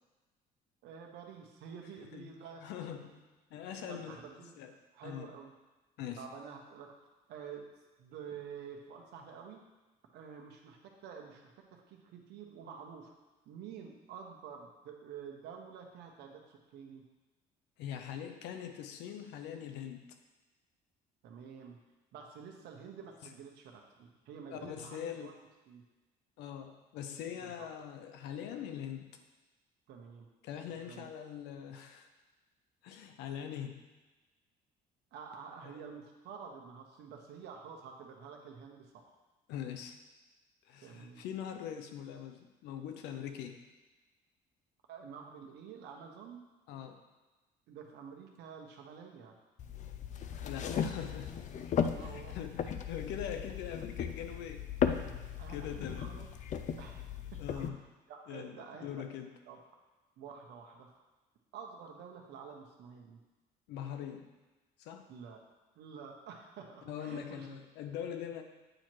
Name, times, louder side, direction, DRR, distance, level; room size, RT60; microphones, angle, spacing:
voice 1, 0.8-2.6 3.0-3.1 3.8-4.5 4.9-5.5 6.2-7.0 7.3-7.7 8.0-9.6 10.1-13.1 13.4-17.0 21.2-21.8 22.1-25.3 25.7-25.8 27.4-27.7 29.9-30.3 30.7-31.1 35.1-39.1 40.8-41.2 44.9-46.4 47.7-49.4 51.9-52.4 55.4-56.3 56.8-57.7 58.1-59.0 59.5-59.6 60.2-61.0 61.5-63.2 65.1-65.4 65.7-67.6, right 6 dB, 80° right, 2 dB, 1.0 m, -49 dB
voice 2, 2.6-3.2 3.5-4.2 4.6-4.7 5.0-5.3 6.0-6.2 17.8-20.0 24.5-25.3 26.4-29.1 30.4-32.1 32.8-33.9 35.7-35.8 39.5-40.0 40.7-43.6 46.7-47.0 50.4-51.4 52.0-54.7 55.2-56.1 57.4-57.8 58.3-59.3 63.7-64.3 64.8-65.1 66.9-68.4, left 9 dB, 90° left, 6 dB, 0.7 m, -42 dB
sound 1, 49.6-57.7, left 8 dB, 45° left, 0.4 m, -36 dB
8.8 x 3.1 x 4.5 m, 1.2 s
cardioid pair, 110°, 17 cm